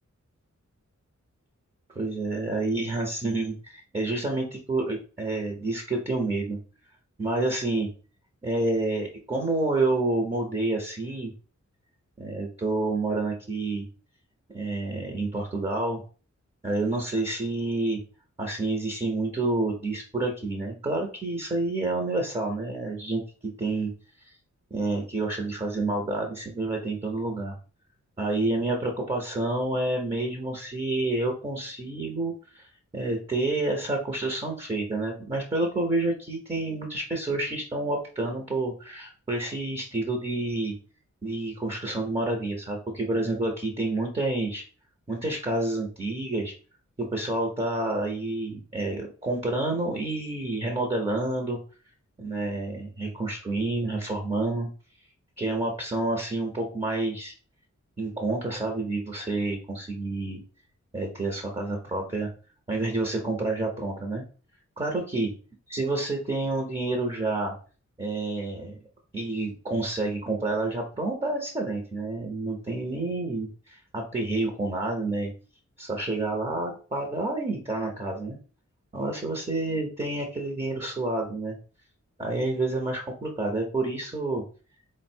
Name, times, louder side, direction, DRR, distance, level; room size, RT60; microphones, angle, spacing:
voice 1, 1.9-6.6 7.2-7.9 8.4-11.3 12.2-13.9 14.5-16.0 16.6-18.0 18.4-23.9 24.7-27.6 28.2-40.8 41.2-44.6 45.1-46.5 47.0-51.6 52.2-54.7 55.4-57.3 58.0-60.4 60.9-62.3 62.7-64.2 64.8-65.3 65.7-67.5 68.0-68.7 69.1-75.3 75.8-78.4 78.9-81.6 82.2-84.4, right 2 dB, 20° right, 1 dB, 0.7 m, -29 dB
4.0 x 2.1 x 4.3 m, 0.38 s
wide cardioid pair, 115°, 30 cm